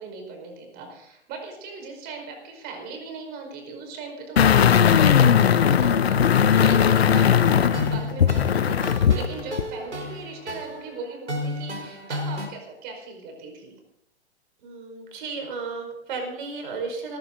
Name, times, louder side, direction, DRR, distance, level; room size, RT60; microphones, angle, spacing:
voice 1, 0.0-13.7, right 4 dB, 30° right, 3 dB, 5.1 m, -38 dB
sound 1, 4.4-9.3 9.6-9.7, left 8 dB, 65° left, 1.0 m, -18 dB
voice 2, 6.6-6.9 14.6-17.2, right 4 dB, 45° right, 3 dB, 5.5 m, -34 dB
sound 2, 7.5-12.5, equal, 85° right, 4.1 m, -33 dB
18.5 x 15.5 x 4.0 m, 0.77 s
figure-of-eight pair, 115°, 34 cm